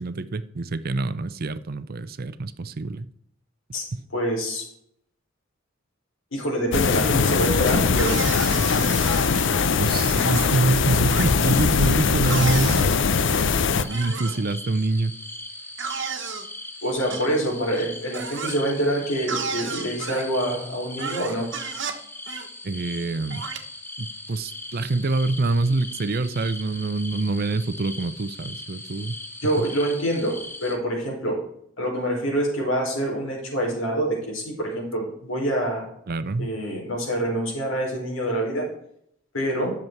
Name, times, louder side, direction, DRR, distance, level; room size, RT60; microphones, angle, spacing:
voice 1, 0.0-3.1 3.9-4.0 9.8-13.0 13.4-15.1 16.0-16.1 22.6-23.4 24.0-29.1 29.6-29.7 36.1-36.5, right 3 dB, 50° right, 0.6 m, -26 dB
voice 2, 4.1-4.6 6.3-8.3 16.8-21.5 29.4-31.4 31.8-35.9 36.4-38.7 39.3-39.7, right 1 dB, 85° left, 4.5 m, -26 dB
sound 1, 6.7-13.8, left 5 dB, 65° left, 0.6 m, -21 dB
sound 2, 8.0-9.4 10.1-10.7 11.1-11.3 12.3-13.0 13.9-14.4 15.8-16.5 17.1-17.3 18.1-18.6 19.3-20.3 21.0-22.0 22.3-22.5 23.3-23.6, right 5 dB, 65° right, 1.3 m, -32 dB
sound 3, 13.8-30.8, left 2 dB, 10° left, 1.0 m, -39 dB
10.5 x 7.3 x 4.6 m
head